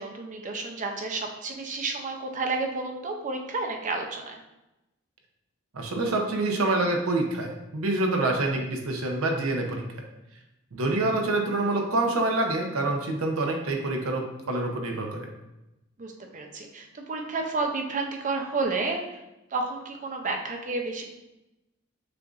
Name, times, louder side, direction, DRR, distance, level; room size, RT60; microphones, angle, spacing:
voice 1, 0.0-4.4 8.5-8.6 16.0-19.2 19.5-21.1, right 3 dB, 35° right, 3 dB, 0.5 m, -31 dB
voice 2, 5.7-9.8 10.7-15.3, right 2 dB, 85° right, 2 dB, 0.7 m, -26 dB
6.7 x 2.5 x 2.4 m, 0.96 s
head